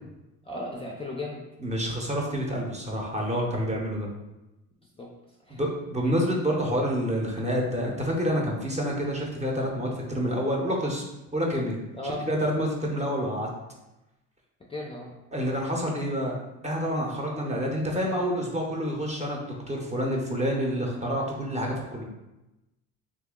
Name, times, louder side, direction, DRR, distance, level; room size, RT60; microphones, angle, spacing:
voice 1, 0.4-1.4 5.0-5.1 5.5-5.6 11.9-12.3 14.7-15.1, left 1 dB, 15° left, -2 dB, 0.5 m, -35 dB
voice 2, 1.6-4.1 5.5-11.0 11.3-11.8 12.0-13.5 15.3-16.3 16.6-22.0, equal, 20° right, -1 dB, 0.7 m, -28 dB
2.7 x 2.5 x 3.7 m, 0.99 s
supercardioid pair, 85°, 35 cm